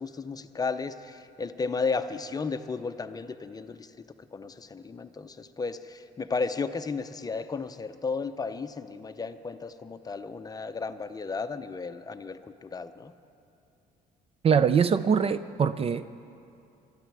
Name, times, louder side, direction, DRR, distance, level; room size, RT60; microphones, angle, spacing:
voice 1, 0.0-3.9 4.3-13.1, left 4 dB, 20° left, 10 dB, 0.6 m, -34 dB
voice 2, 14.4-16.1, right 6 dB, 35° right, 14 dB, 0.4 m, -23 dB
23.0 x 13.0 x 4.7 m, 2.6 s
cardioid pair, 110°, 17 cm